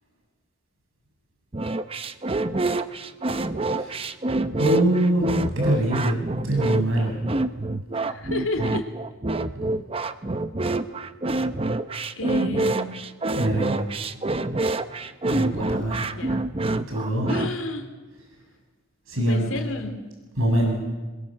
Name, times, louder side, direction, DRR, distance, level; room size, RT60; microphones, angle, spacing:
sound 1, 1.5-17.5, right 2 dB, 30° right, 0.8 m, -26 dB
voice 1, 4.5-5.3 5.6-7.2 13.3-13.9 15.2-16.1 16.8-17.3 19.1-19.6 20.4-20.8, right 1 dB, 85° right, 0 dB, 7.3 m, -24 dB
voice 2, 8.0-8.9 12.2-12.9 16.2-16.4 17.3-17.9 19.2-19.9, left 2 dB, 80° left, 6 dB, 3.0 m, -30 dB
24.5 x 21.5 x 7.6 m, 1.3 s
head